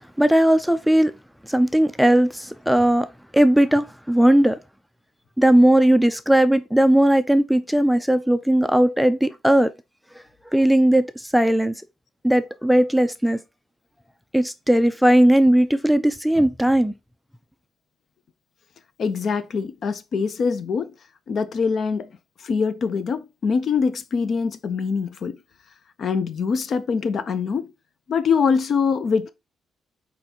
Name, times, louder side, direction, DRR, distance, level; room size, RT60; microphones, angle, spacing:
voice 1, 0.2-1.1 1.4-4.6 5.4-9.7 10.5-11.8 12.2-13.4 14.3-16.9, right 1 dB, ahead, 0.4 m, -18 dB
voice 2, 19.0-20.9 21.3-22.1 22.4-25.4 26.0-27.7 28.1-29.3, left 5 dB, 55° left, 0.6 m, -23 dB
4.4 x 4.0 x 2.8 m
cardioid pair, 90°, 0 cm